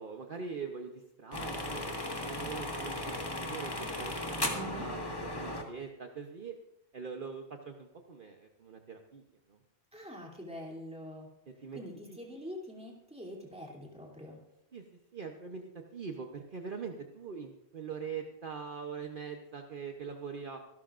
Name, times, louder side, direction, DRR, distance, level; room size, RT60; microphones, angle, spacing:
voice 1, 0.0-1.9 2.3-6.6 6.9-9.2 9.5-9.6 11.6-11.8 12.1-12.2 14.7-14.8 15.1-20.6, right 5 dB, 50° right, 3 dB, 1.1 m, -43 dB
sound 1, 1.3-5.6, left 1 dB, 20° left, 1.7 m, -36 dB
voice 2, 4.5-4.9 9.9-14.4, equal, 5° right, -2 dB, 3.0 m, -45 dB
25.5 x 12.0 x 2.5 m, 0.87 s
omnidirectional pair, 1.1 m